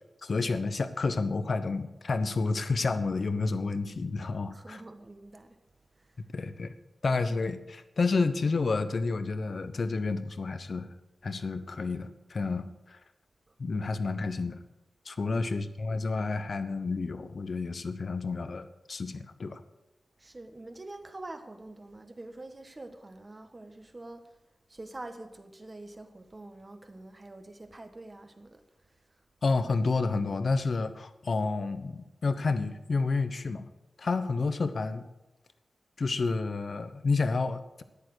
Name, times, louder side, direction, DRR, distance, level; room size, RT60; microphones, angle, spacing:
voice 1, 0.2-4.8 6.3-6.7 7.0-10.9 11.2-13.0 13.6-14.6 15.0-19.6 29.4-33.7 34.0-35.1 36.0-37.8, left 3 dB, 50° left, 11 dB, 1.0 m, -30 dB
voice 2, 4.5-5.6 6.0-6.1 15.2-15.4 20.2-24.2 24.7-28.6, right 2 dB, 25° right, 8 dB, 1.4 m, -46 dB
13.5 x 10.5 x 6.5 m, 1.0 s
wide cardioid pair, 125°, 0 cm